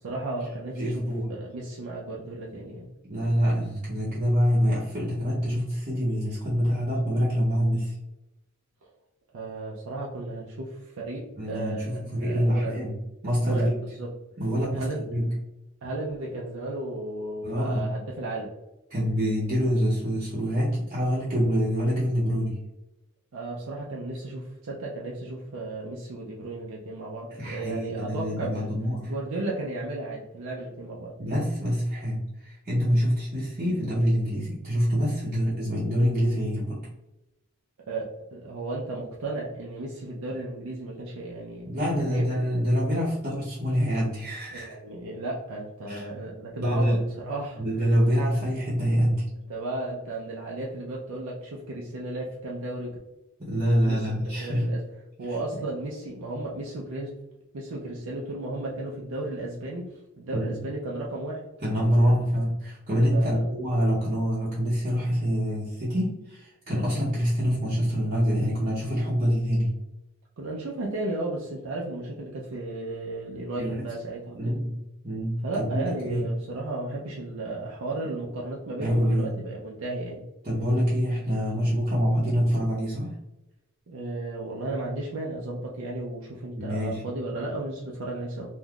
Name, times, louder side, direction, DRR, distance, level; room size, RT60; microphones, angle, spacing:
voice 1, 0.0-2.9 9.3-12.8 13.4-14.1 14.7-15.1 15.8-18.5 23.3-28.7 29.0-31.2 37.9-42.4 44.5-47.6 49.5-53.0 53.9-54.8 55.2-57.2 57.5-61.4 63.1-63.5 70.4-74.5 75.4-80.2 83.9-88.5, right 2 dB, 70° right, -3 dB, 0.5 m, -34 dB
voice 2, 0.8-1.3 3.0-7.9 11.4-12.9 13.2-13.7 14.4-15.3 17.4-17.8 18.9-22.6 27.3-29.1 31.2-36.8 41.7-44.7 45.9-46.1 46.6-47.0 47.6-49.2 53.4-54.7 55.5-55.6 60.3-60.6 61.6-69.7 73.6-73.8 74.3-74.7 75.0-76.2 78.8-79.4 80.4-83.1 86.5-87.0, equal, 35° right, -9 dB, 0.7 m, -25 dB
3.5 x 2.6 x 2.3 m, 1.0 s
head